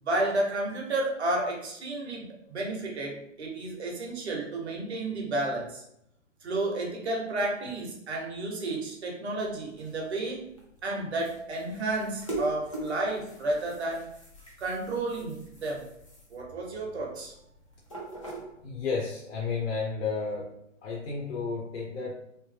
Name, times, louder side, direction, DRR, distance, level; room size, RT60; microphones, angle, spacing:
voice 1, 0.0-5.8 6.4-10.4 10.8-14.1 14.6-15.9 16.3-17.3, right 2 dB, 55° right, -1 dB, 1.0 m, -31 dB
sound 1, 9.4-19.0, right 2 dB, 25° left, 0.4 m, -43 dB
voice 2, 18.6-20.5 20.8-22.1, left 4 dB, 55° left, -3 dB, 0.8 m, -32 dB
3.1 x 2.1 x 3.2 m, 0.77 s
hypercardioid pair, 165°, 39 cm